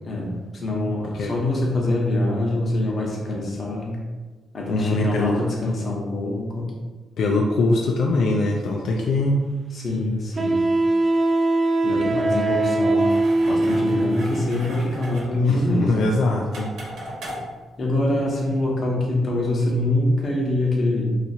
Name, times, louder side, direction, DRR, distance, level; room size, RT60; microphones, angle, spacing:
voice 1, 0.0-4.0 4.5-6.7 9.7-10.7 11.8-13.1 13.4-16.1 17.8-21.0, left 1 dB, 40° left, -2 dB, 0.8 m, -24 dB
voice 2, 4.7-5.4 7.2-9.4 15.4-16.7, left 2 dB, 75° left, 0 dB, 0.4 m, -22 dB
Wind instrument woodwind instrument, 9.1-9.2 10.4-14.4, right 2 dB, 25° right, 0.3 m, -21 dB
sound 1, 13.0-18.5, equal, 75° right, 1.0 m, -39 dB
2.7 x 2.5 x 4.1 m, 1.3 s
cardioid pair, 135°, 0 cm